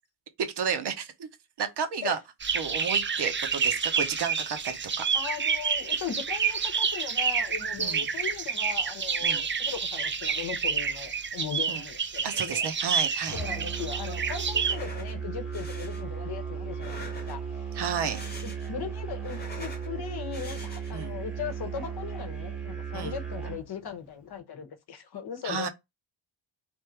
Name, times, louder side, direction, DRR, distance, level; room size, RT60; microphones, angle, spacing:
voice 1, 0.4-1.3 1.6-2.2 2.5-5.0 7.8-8.1 9.2-9.4 11.7-11.8 12.2-13.4 17.7-18.2 20.9-21.2 22.9-23.1 25.4-25.7, right 6 dB, 55° right, 0.9 m, -32 dB
sound 1, 2.4-14.7, right 6 dB, 25° right, 0.5 m, -29 dB
voice 2, 5.1-12.7 13.3-17.4 18.4-25.7, left 8 dB, 50° left, 0.9 m, -38 dB
Musical instrument, 13.3-23.7, right 7 dB, ahead, 0.9 m, -36 dB
sound 2, 14.5-15.2 15.5-16.0 16.7-17.5 17.9-18.8 19.1-19.9 20.3-21.1, left 3 dB, 20° left, 1.3 m, -45 dB
3.5 x 2.6 x 4.4 m
cardioid pair, 135°, 50 cm